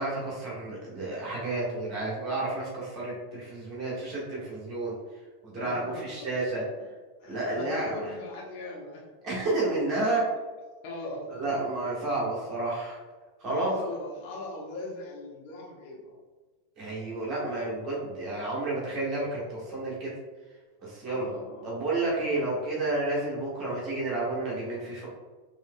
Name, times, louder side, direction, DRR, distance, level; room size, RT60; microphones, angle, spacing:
voice 1, 0.0-4.9 5.4-6.6 7.3-8.2 9.2-10.2 11.3-13.0 13.4-13.7 16.8-20.1 20.8-21.3 21.6-25.1, right 2 dB, 35° right, -5 dB, 1.4 m, -31 dB
voice 2, 5.6-6.6 7.2-9.1 10.8-11.5 13.5-16.2 21.1-21.8, left 2 dB, 45° left, -3 dB, 1.2 m, -40 dB
5.4 x 2.9 x 2.2 m, 1.3 s
figure-of-eight pair, 90°, 0 cm